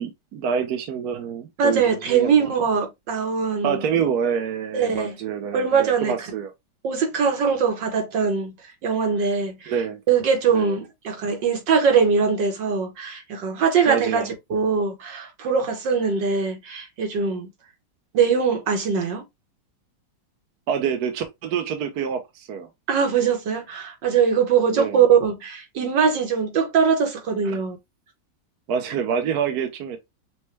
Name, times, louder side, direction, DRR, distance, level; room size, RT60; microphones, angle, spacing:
voice 1, 0.0-2.5 3.6-6.5 9.7-10.0 10.5-10.8 13.9-14.3 20.7-22.7 24.7-25.0 27.4-27.6 28.7-30.0, right 7 dB, 65° right, 1.3 m, -27 dB
voice 2, 1.6-3.8 4.7-5.1 5.5-6.1 6.8-8.5 8.8-9.7 10.1-17.5 18.1-19.2 22.9-27.8, right 6 dB, 85° right, 1.9 m, -22 dB
6.3 x 2.2 x 3.2 m
omnidirectional pair, 1.9 m